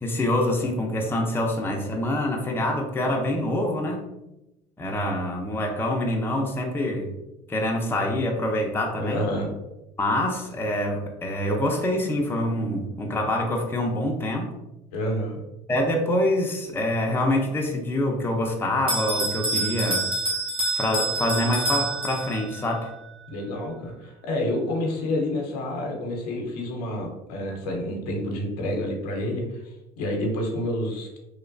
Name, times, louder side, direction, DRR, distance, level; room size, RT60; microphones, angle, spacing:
voice 1, 0.0-4.0 4.8-7.1 7.5-9.2 10.0-14.5 15.7-20.0 20.7-22.9, left 1 dB, 10° left, 0 dB, 0.5 m, -25 dB
voice 2, 9.0-9.5 14.9-15.4 23.3-31.2, left 1 dB, 80° left, 1 dB, 0.7 m, -29 dB
Bell, 18.9-22.6, right 2 dB, 25° right, 0.8 m, -27 dB
3.0 x 2.1 x 2.5 m, 0.95 s
hypercardioid pair, 75°, 20 cm